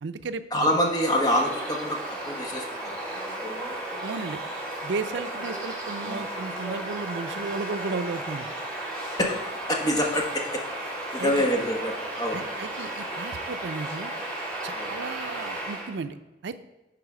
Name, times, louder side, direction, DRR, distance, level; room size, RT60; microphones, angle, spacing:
voice 1, 0.0-0.8 4.0-4.4 4.8-8.5 11.2-11.5 12.3-14.1 14.6-16.2 16.4-16.6, right 4 dB, 80° right, 11 dB, 0.5 m, -34 dB
voice 2, 0.5-3.3 9.2-9.4 9.7-12.4 14.7-14.9, equal, 20° left, 0 dB, 1.2 m, -26 dB
Bird vocalization bird call bird song, 0.7-15.9, right 1 dB, 5° left, 2.9 m, -34 dB
10.5 x 4.0 x 4.8 m, 1.1 s
head